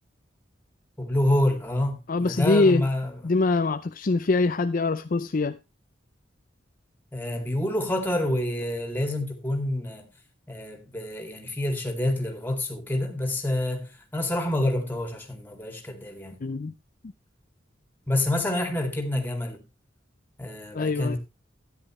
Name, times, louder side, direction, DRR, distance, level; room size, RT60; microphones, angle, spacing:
voice 1, 1.0-3.1 7.1-10.1 10.5-16.4 18.1-19.6 20.4-21.2, left 1 dB, 10° left, 2.5 m, -27 dB
voice 2, 2.1-2.9 3.2-5.6 16.4-16.7 20.7-21.2, left 3 dB, 45° left, 0.5 m, -23 dB
13.0 x 10.0 x 3.1 m
head